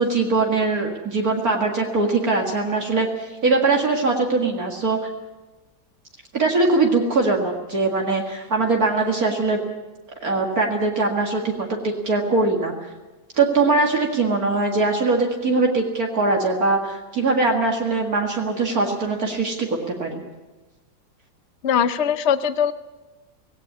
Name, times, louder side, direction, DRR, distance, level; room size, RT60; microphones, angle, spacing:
voice 1, 0.0-5.0 6.3-9.6 10.2-12.7 13.4-20.2, right 3 dB, 55° right, 1 dB, 2.4 m, -21 dB
voice 2, 21.6-22.7, left 8 dB, 55° left, 12 dB, 0.8 m, -20 dB
18.0 x 17.0 x 9.6 m, 1.2 s
omnidirectional pair, 1.9 m